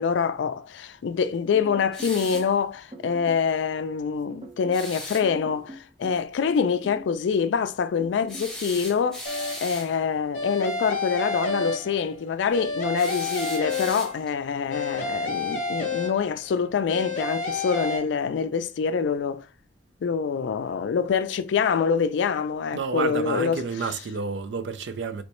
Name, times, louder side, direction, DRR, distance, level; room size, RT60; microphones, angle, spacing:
voice 1, 0.0-9.2 9.6-19.5 20.0-23.6, left 6 dB, 80° left, 0.3 m, -25 dB
sound 1, 1.5-2.5 2.9-3.5 4.3-4.9 5.2-6.3 6.6-7.2 8.0-8.5, right 1 dB, 30° right, 0.6 m, -42 dB
sound 2, 1.9-2.5 4.7-5.3 8.3-9.9 13.0-14.4, equal, 5° left, 0.8 m, -38 dB
sound 3, 9.3-9.8 10.3-12.2 12.5-14.3 14.7-16.5 16.9-18.0, left 3 dB, 40° left, 0.8 m, -30 dB
voice 2, 22.7-25.2, right 4 dB, 75° right, 0.4 m, -30 dB
3.2 x 3.1 x 2.9 m
head